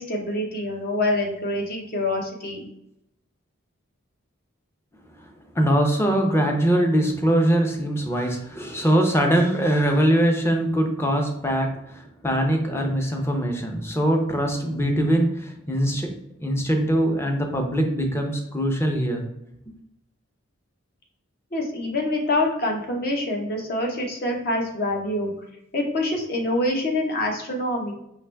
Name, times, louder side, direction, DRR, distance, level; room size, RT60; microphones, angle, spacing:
voice 1, 0.0-2.6 21.5-25.3 25.7-27.9, left 1 dB, 50° left, 0 dB, 1.1 m, -25 dB
voice 2, 5.5-16.1 16.4-19.3 19.7-19.8, right 1 dB, 10° left, 3 dB, 0.7 m, -22 dB
4.8 x 3.1 x 3.4 m, 0.80 s
head